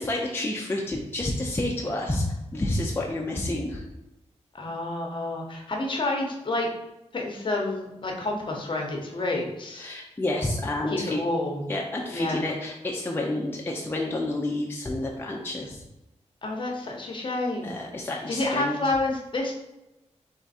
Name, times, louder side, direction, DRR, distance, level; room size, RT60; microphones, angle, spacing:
voice 1, 0.0-3.8 9.8-11.2 11.7-15.8 17.6-18.8, left 1 dB, 20° left, -2 dB, 0.6 m, -29 dB
voice 2, 4.5-6.7 7.1-9.9 10.9-11.7 12.1-12.4 16.4-17.7 18.3-19.5, left 2 dB, 45° left, 1 dB, 1.0 m, -29 dB
3.6 x 3.5 x 4.2 m, 0.94 s
wide cardioid pair, 115°, 12 cm